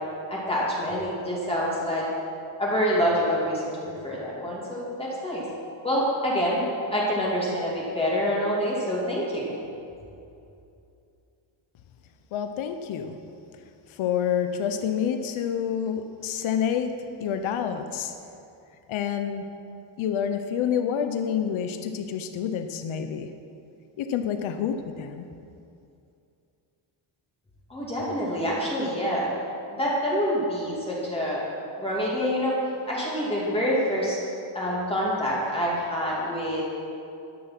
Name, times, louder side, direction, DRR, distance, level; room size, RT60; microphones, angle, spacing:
voice 1, 0.3-2.0 2.6-3.7 4.0-5.4 5.8-6.6 6.9-9.5 27.7-29.3 29.8-31.4 31.8-32.5 32.8-34.2 34.5-36.6, equal, 10° left, -6 dB, 2.7 m, -26 dB
voice 2, 12.3-13.2 13.9-16.9 17.2-18.1 18.9-19.4 20.0-23.3 24.0-25.3, left 8 dB, 75° left, 7 dB, 0.9 m, -28 dB
12.5 x 10.5 x 6.1 m, 2.6 s
wide cardioid pair, 165°, 48 cm